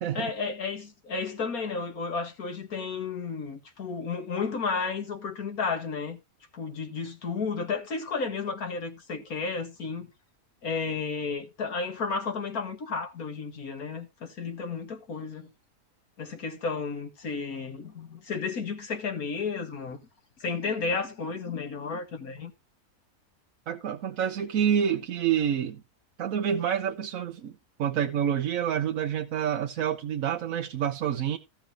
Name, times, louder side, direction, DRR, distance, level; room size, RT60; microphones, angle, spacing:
voice 1, 0.1-6.2 6.5-10.1 10.6-15.5 16.2-20.0 20.4-22.5, left 4 dB, 90° left, 2.2 m, -32 dB
voice 2, 23.7-25.8 26.2-27.5 27.8-31.4, right 9 dB, 70° right, 1.1 m, -28 dB
14.5 x 5.8 x 4.9 m
omnidirectional pair, 1.5 m